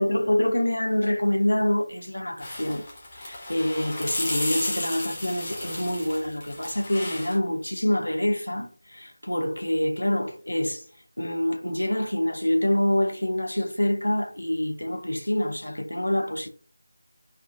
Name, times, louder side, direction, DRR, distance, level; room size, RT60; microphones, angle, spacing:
voice 1, 0.0-2.8 3.1-10.8 11.2-16.5, left 1 dB, 75° left, 0.6 m, -26 dB
sound 1, 2.4-7.4, left 1 dB, 20° left, 0.7 m, -33 dB
2.4 x 2.1 x 2.4 m
figure-of-eight pair, 165°, 0 cm